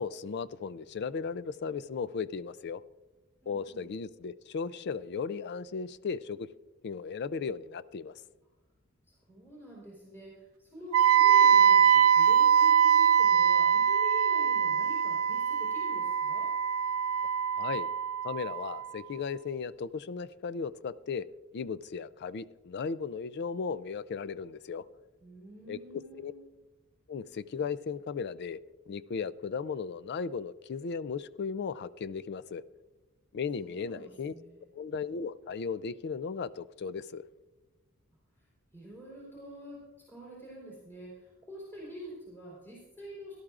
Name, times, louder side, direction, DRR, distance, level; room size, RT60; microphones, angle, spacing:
voice 1, 0.0-2.8 3.5-6.5 6.8-8.1 17.5-17.9 18.2-21.3 21.5-24.8 25.7-25.8 26.2-26.3 27.1-28.6 28.9-32.6 33.3-34.3 34.7-37.2, left 5 dB, 50° left, 17 dB, 0.4 m, -36 dB
voice 2, 3.4-3.9 9.3-16.5 25.2-26.4 33.6-34.6 38.7-39.8 40.1-43.4, equal, 10° left, -6 dB, 3.8 m, -47 dB
Wind instrument woodwind instrument, 10.9-18.9, right 8 dB, 75° right, 0.5 m, -23 dB
17.5 x 12.0 x 2.5 m, 1.1 s
head